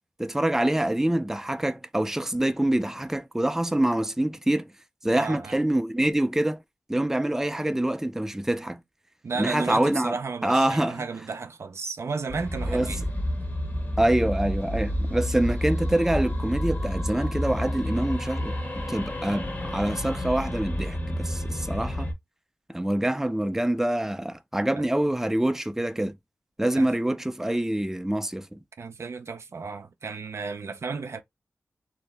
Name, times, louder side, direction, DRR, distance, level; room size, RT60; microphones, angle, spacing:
voice 1, 0.2-4.7 5.0-6.6 6.9-8.8 9.4-10.2 10.4-11.0 12.7-12.9 14.0-22.1 22.7-26.1 26.6-28.6, right 1 dB, 10° right, 0.4 m, -25 dB
voice 2, 5.1-5.6 9.2-13.0 24.8-24.9 26.8-26.9 28.8-31.2, right 4 dB, 70° right, 0.4 m, -33 dB
sound 1, 12.3-22.1, equal, 40° left, 1.0 m, -30 dB
2.7 x 2.1 x 3.2 m
cardioid pair, 50°, 5 cm